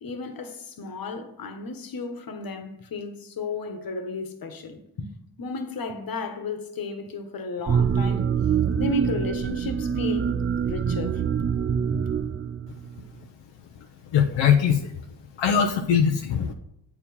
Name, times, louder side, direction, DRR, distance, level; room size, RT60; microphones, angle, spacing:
voice 1, 0.0-5.1 5.4-8.2 8.8-10.3 10.6-11.2, left 2 dB, 55° left, 1.4 m, -33 dB
sound 1, 7.7-13.0, right 7 dB, 30° right, 0.4 m, -25 dB
voice 2, 14.1-14.9 15.4-16.5, left 7 dB, 85° left, 0.8 m, -21 dB
8.3 x 4.9 x 5.5 m
cardioid pair, 90°, 43 cm